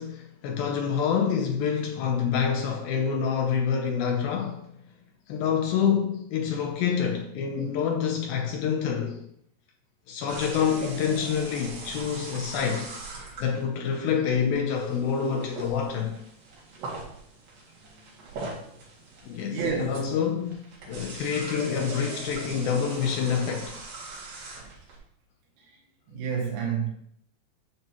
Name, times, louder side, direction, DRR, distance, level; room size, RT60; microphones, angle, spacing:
voice 1, 0.0-4.7 5.3-9.3 10.1-12.9 13.4-16.2 19.3-20.6 20.9-23.8, left 7 dB, 80° left, 2.1 m, -27 dB
sound 1, 10.3-25.0, right 3 dB, 60° right, 3.6 m, -40 dB
voice 2, 19.5-20.1 26.1-26.9, right 6 dB, 85° right, 3.9 m, -29 dB
9.8 x 6.0 x 2.9 m
omnidirectional pair, 5.0 m